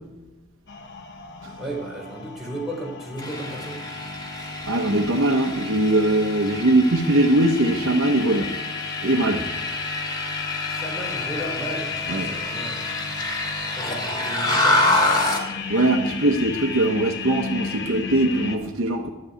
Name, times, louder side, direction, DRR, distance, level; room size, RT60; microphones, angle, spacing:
sound 1, 0.7-18.6, left 5 dB, 55° left, 1.2 m, -34 dB
voice 1, 1.6-3.8 10.7-13.0 13.8-15.1, right 1 dB, ahead, 4.2 m, -34 dB
sound 2, 3.2-15.5, left 2 dB, 20° left, 2.1 m, -27 dB
voice 2, 4.7-8.5 9.0-9.5 12.1-12.3 15.7-19.1, right 1 dB, 65° right, 1.0 m, -21 dB
12.0 x 6.9 x 9.5 m
head